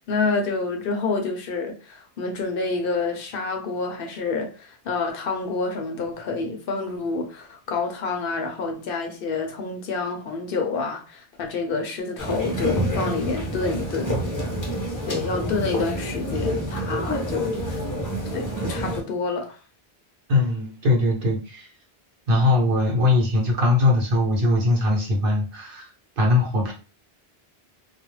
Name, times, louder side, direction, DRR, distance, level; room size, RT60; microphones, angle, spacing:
voice 1, 0.1-14.2 15.0-17.8 18.3-19.6, left 4 dB, 65° left, 0.7 m, -28 dB
sound 1, 12.2-19.0, equal, 25° left, 0.5 m, -28 dB
voice 2, 20.3-21.7 22.3-26.7, left 2 dB, 65° right, 0.9 m, -21 dB
2.3 x 2.0 x 3.0 m
omnidirectional pair, 1.0 m